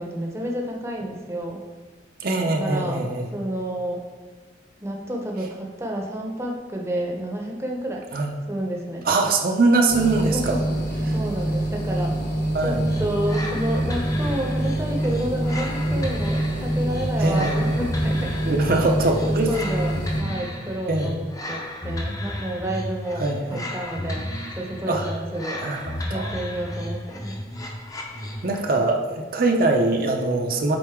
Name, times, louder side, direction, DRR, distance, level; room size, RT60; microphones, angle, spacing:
voice 1, 0.0-1.6 2.6-4.0 4.8-8.1 8.5-9.1 10.2-10.6 11.1-12.1 12.6-18.3 19.3-25.6 26.1-27.4, right 1 dB, 15° right, 0 dB, 0.7 m, -30 dB
voice 2, 2.2-3.3 8.1-8.3 9.0-10.6 11.1-11.2 12.5-12.9 17.2-17.8 18.4-19.6 20.9-21.2 23.2-23.6 24.8-25.1 25.6-26.3 28.4-30.8, right 2 dB, 50° right, 2 dB, 0.6 m, -22 dB
sound 1, 9.9-20.2, right 1 dB, 40° left, 1.2 m, -26 dB
sound 2, 12.8-28.7, left 1 dB, 20° left, 0.6 m, -33 dB
7.7 x 4.0 x 3.6 m, 1.3 s
head